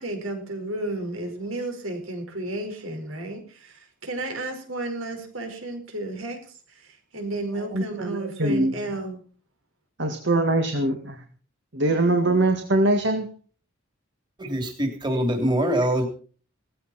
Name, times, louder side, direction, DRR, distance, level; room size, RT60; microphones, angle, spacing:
voice 1, 0.0-6.4 6.7-9.2, right 2 dB, 80° right, 5 dB, 5.1 m, -32 dB
voice 2, 7.6-8.7 10.0-11.2 11.7-13.3, right 2 dB, 55° right, 5 dB, 2.0 m, -23 dB
voice 3, 14.4-16.1, right 1 dB, 20° right, 3 dB, 3.3 m, -24 dB
18.0 x 15.5 x 4.3 m, 0.42 s
head